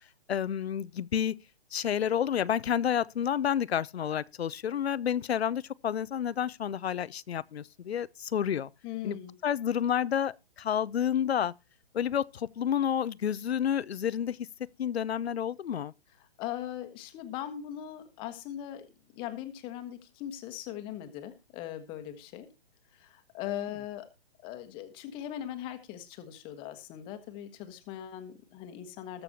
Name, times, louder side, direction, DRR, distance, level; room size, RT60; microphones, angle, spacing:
voice 1, 0.3-1.3 1.7-8.7 9.0-9.2 9.4-11.5 11.9-14.4 14.8-15.9, left 9 dB, 80° left, 0.7 m, -30 dB
voice 2, 8.8-9.3 16.2-18.9 19.1-22.5 22.9-24.1 24.4-29.2, left 11 dB, 15° left, 1.2 m, -40 dB
20.0 x 6.9 x 2.8 m
hypercardioid pair, 160°, 31 cm